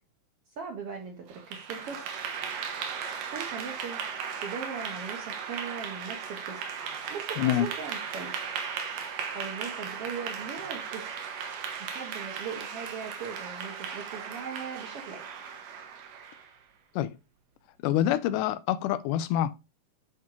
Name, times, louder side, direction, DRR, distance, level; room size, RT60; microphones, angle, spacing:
voice 1, 0.6-2.1 3.3-4.0 4.4-6.6 7.1-8.4 9.3-11.1 11.8-15.5, right 6 dB, 70° right, 1.4 m, -39 dB
Clapping / Applause, 1.3-16.6, right 7 dB, 90° right, 2.7 m, -37 dB
voice 2, 7.4-7.7 17.0-17.2 17.8-19.5, left 11 dB, 85° left, 2.1 m, -26 dB
10.5 x 3.6 x 2.9 m
omnidirectional pair, 3.7 m